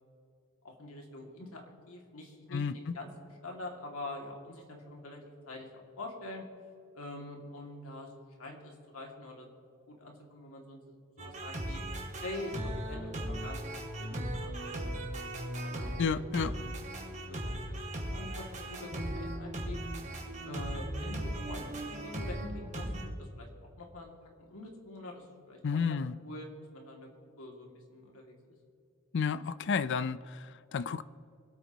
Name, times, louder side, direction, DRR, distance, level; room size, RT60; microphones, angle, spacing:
voice 1, 0.6-3.1 3.4-6.5 6.9-8.1 8.4-9.5 9.9-10.8 11.2-11.8 12.2-12.5 12.9-13.7 14.0-15.0 15.6-16.7 17.3-19.8 20.4-22.9 23.2-23.5 23.8-24.1 24.4-26.0 26.2-27.1 27.4-28.6, left 2 dB, 85° left, 0 dB, 2.4 m, -45 dB
voice 2, 2.5-3.0 16.0-16.5 25.6-26.2 29.1-31.0, left 5 dB, 55° left, 16 dB, 0.4 m, -31 dB
sound 1, 11.2-23.0, right 1 dB, 35° right, 2.3 m, -38 dB
25.5 x 8.9 x 3.0 m, 2.6 s
head